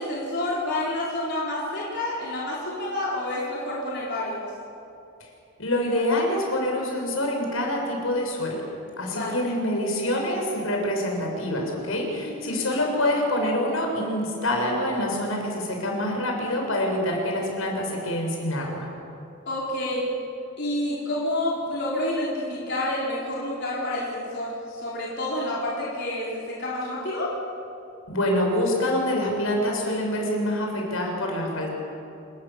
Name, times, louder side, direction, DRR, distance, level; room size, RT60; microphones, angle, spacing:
voice 1, 0.0-4.5 9.1-9.4 12.2-12.7 19.5-20.0 20.6-27.3, left 1 dB, 55° left, -6 dB, 4.5 m, -29 dB
voice 2, 5.6-8.6 9.0-18.9 28.1-31.7, left 1 dB, 80° left, 0 dB, 6.5 m, -26 dB
28.0 x 20.0 x 7.4 m, 2.7 s
head